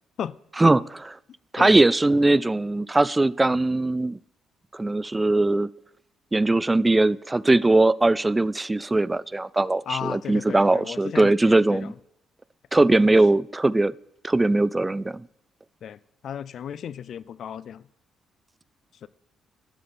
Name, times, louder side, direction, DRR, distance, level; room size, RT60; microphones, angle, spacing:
voice 1, 1.5-4.2 4.7-5.7 6.3-11.9 12.7-13.9 14.2-15.3, right 2 dB, 15° right, 0.4 m, -20 dB
voice 2, 9.9-11.9 15.8-16.0 16.2-17.8 19.0-19.1, left 9 dB, 65° left, 0.5 m, -34 dB
12.5 x 12.0 x 4.3 m
cardioid pair, 90°, 0 cm